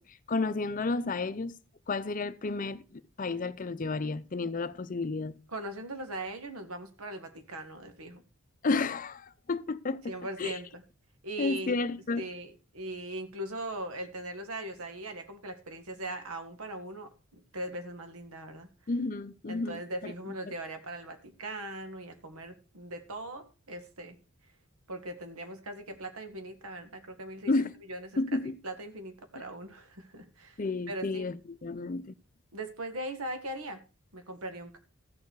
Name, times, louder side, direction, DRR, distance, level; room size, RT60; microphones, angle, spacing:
voice 1, 0.0-1.5 1.9-5.4 8.6-10.0 10.4-10.5 11.4-12.2 18.9-20.1 27.5-27.7 28.2-28.6 30.6-32.1, left 3 dB, 40° left, 0.5 m, -31 dB
voice 2, 5.5-8.2 10.1-10.8 11.2-11.8 12.2-18.7 19.5-24.2 24.9-30.6 30.9-31.3 32.5-33.8 34.1-34.8, right 1 dB, 85° right, 1.8 m, -40 dB
14.5 x 7.1 x 4.7 m
head